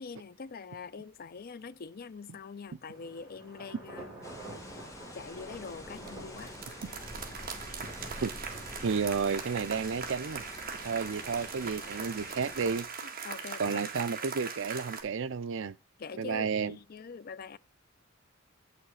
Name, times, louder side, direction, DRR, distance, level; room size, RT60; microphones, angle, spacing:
voice 1, 0.0-4.1 5.1-6.5 12.3-12.4 13.0-13.8 16.0-17.6, left 4 dB, 45° left, 0.5 m, -44 dB
Thunder, 2.9-12.7, right 1 dB, 5° right, 6.1 m, -48 dB
sound 1, 4.2-12.8, left 2 dB, 15° left, 1.7 m, -49 dB
sound 2, 5.7-6.1 6.4-15.0, right 5 dB, 45° right, 1.7 m, -41 dB
voice 2, 8.8-10.4 10.8-12.9 13.6-15.8 16.2-16.8, right 5 dB, 65° right, 0.5 m, -31 dB
8.3 x 5.9 x 4.8 m
head